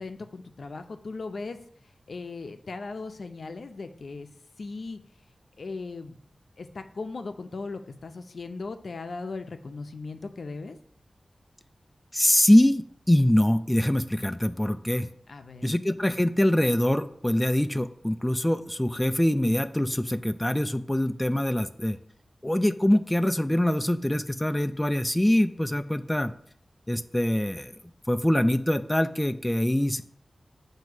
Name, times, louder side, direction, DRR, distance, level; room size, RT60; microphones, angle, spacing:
voice 1, 0.0-1.6 2.1-4.3 4.6-5.0 5.6-6.2 6.6-10.8 15.3-15.7, left 3 dB, 70° left, 7 dB, 0.5 m, -38 dB
voice 2, 12.1-15.1 15.6-22.0 22.4-26.3 26.9-27.7 28.1-30.0, left 1 dB, 10° left, 10 dB, 0.3 m, -24 dB
7.7 x 2.7 x 5.8 m, 0.63 s
wide cardioid pair, 80°, 0 cm